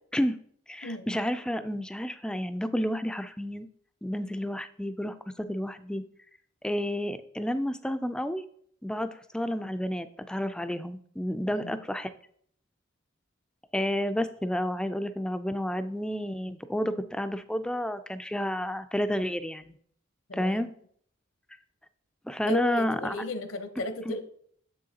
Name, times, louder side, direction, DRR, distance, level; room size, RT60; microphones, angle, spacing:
voice 1, 0.7-3.7 4.0-6.0 6.6-8.4 8.8-12.1 13.7-19.8 20.3-20.7 22.3-23.2 24.1-24.2, equal, 5° left, 10 dB, 0.3 m, -30 dB
voice 2, 20.3-20.6 22.5-24.2, left 2 dB, 75° left, 8 dB, 0.8 m, -34 dB
7.3 x 6.3 x 2.8 m, 0.62 s
head